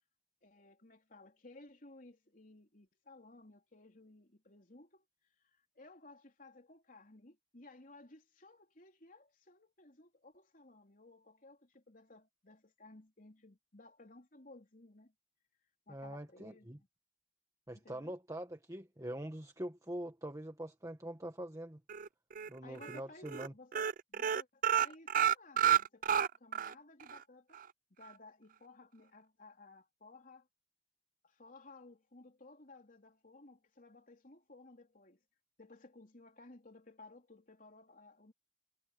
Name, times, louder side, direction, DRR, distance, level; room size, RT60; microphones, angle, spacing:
voice 1, 0.4-5.1 5.5-15.1 15.9-16.9 17.7-18.2 22.6-27.6 28.0-30.5 31.2-35.2 35.6-38.3, left 2 dB, 50° left, 3.6 m, -58 dB
voice 2, 15.9-16.8 17.7-21.8 22.5-23.5, right 1 dB, 20° right, 1.8 m, -44 dB
sound 1, 21.9-22.5 22.8-23.0 23.3-23.5 23.7-26.7 27.1-27.2 27.5-27.6, right 9 dB, 50° right, 0.5 m, -30 dB
head